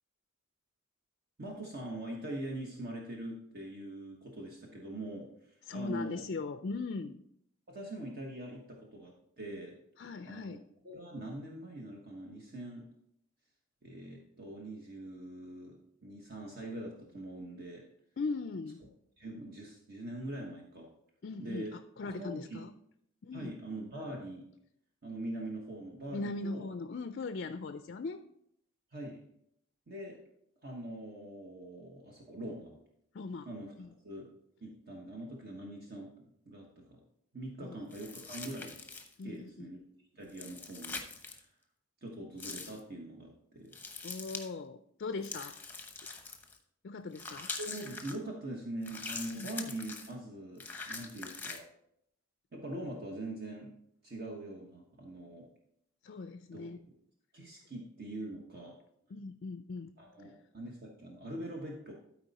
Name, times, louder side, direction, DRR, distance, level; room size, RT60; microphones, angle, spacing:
voice 1, 1.4-6.2 7.7-9.7 10.2-12.9 13.8-17.8 19.2-20.9 21.4-21.7 22.2-22.6 23.3-24.5 25.0-26.7 28.9-29.2 29.9-30.2 30.6-32.8 33.5-34.3 34.6-37.0 37.3-38.8 39.2-39.8 40.1-41.5 42.0-43.7 47.4-51.7 52.5-53.7 54.0-55.5 56.5-56.6 57.3-58.7 60.0-61.9, right 1 dB, 50° right, -1 dB, 1.2 m, -43 dB
voice 2, 5.7-7.2 10.0-10.6 18.2-18.8 21.2-22.7 23.2-23.6 26.1-28.2 33.1-33.5 33.8-33.9 37.6-37.8 39.2-39.7 44.0-45.5 46.8-47.5 49.4-49.5 56.0-56.8 59.1-59.9, left 3 dB, 50° left, 10 dB, 0.4 m, -39 dB
sound 1, 37.9-39.2 40.3-41.4 42.4-42.8 43.7-44.5 45.2-46.6 47.1-48.2 48.8-50.1 50.6-51.6, left 4 dB, 10° left, 0.8 m, -43 dB
12.5 x 4.5 x 4.1 m, 0.73 s
head